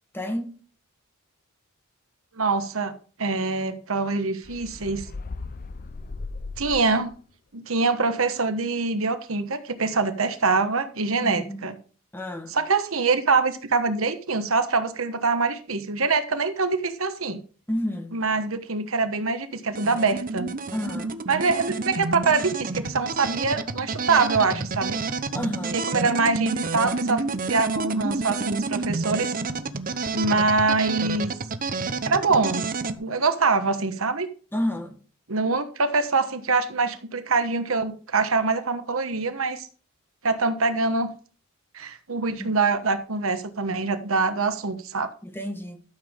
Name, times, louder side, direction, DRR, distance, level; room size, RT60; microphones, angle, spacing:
voice 1, 0.1-0.6 11.2-11.7 12.1-12.6 17.7-18.2 20.7-21.2 25.3-25.8 34.5-35.0 42.4-42.5 44.1-44.3 45.2-45.9, left 1 dB, 10° left, 1.3 m, -30 dB
voice 2, 2.3-2.9 3.2-5.1 6.6-7.1 7.5-11.7 12.5-17.4 18.1-20.5 21.3-25.0 25.7-27.2 27.5-29.3 30.1-31.3 32.0-32.7 33.0-34.3 35.3-39.7 40.2-41.1 41.7-45.1, right 4 dB, 70° right, 1.2 m, -24 dB
sound 1, 4.4-7.2, left 3 dB, 40° left, 0.5 m, -37 dB
sound 2, 19.7-33.0, right 3 dB, 40° right, 0.8 m, -29 dB
12.5 x 7.3 x 3.6 m
head